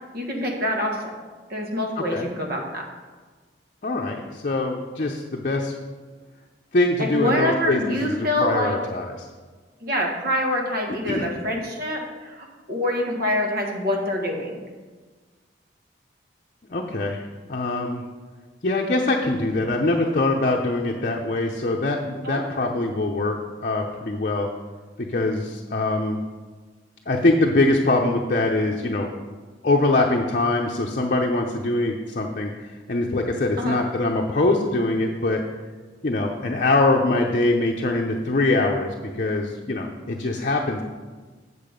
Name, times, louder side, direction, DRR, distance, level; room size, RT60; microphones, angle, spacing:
voice 1, 0.1-1.1 1.5-2.8 7.0-8.8 9.8-14.6 22.2-22.4 33.6-33.8, left 1 dB, 55° right, 1 dB, 1.6 m, -26 dB
voice 2, 2.0-2.3 3.8-5.7 6.7-8.1 8.4-9.3 11.1-11.3 16.7-17.2 17.5-18.0 18.6-23.4 23.6-24.5 25.0-26.2 27.1-29.1 29.6-32.5 32.9-35.4 36.0-40.8, left 2 dB, 45° left, 0 dB, 0.7 m, -23 dB
8.7 x 6.7 x 5.1 m, 1.4 s
head